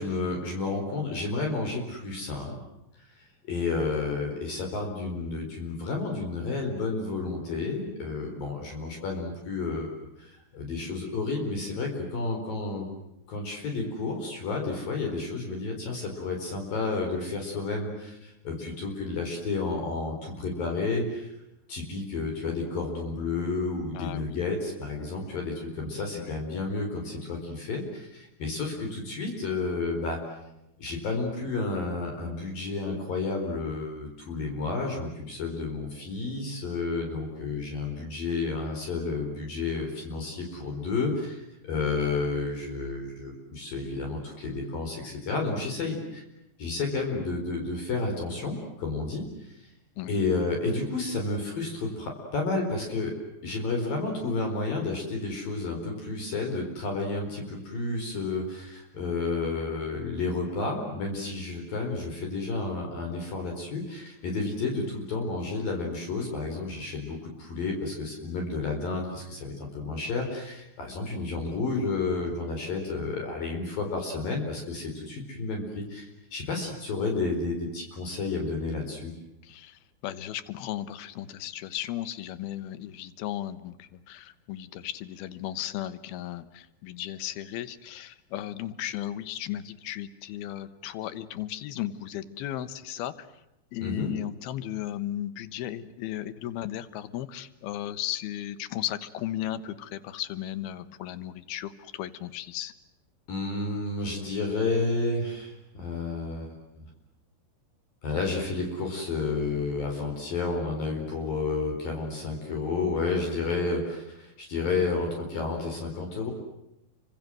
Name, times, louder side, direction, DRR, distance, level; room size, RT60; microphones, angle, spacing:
voice 1, 0.0-2.6 3.5-9.9 10.2-12.9 13.3-21.3 21.7-30.2 30.8-46.2 46.6-49.6 50.1-53.1 53.4-79.1 93.8-94.1 103.3-106.6 108.0-116.3, left 3 dB, 55° left, 2 dB, 6.0 m, -31 dB
voice 2, 23.9-24.4 26.2-26.4 50.0-50.2 79.4-93.3 93.7-102.7, left 12 dB, 70° left, 14 dB, 2.9 m, -35 dB
29.5 x 25.5 x 7.7 m, 0.87 s
omnidirectional pair, 4.9 m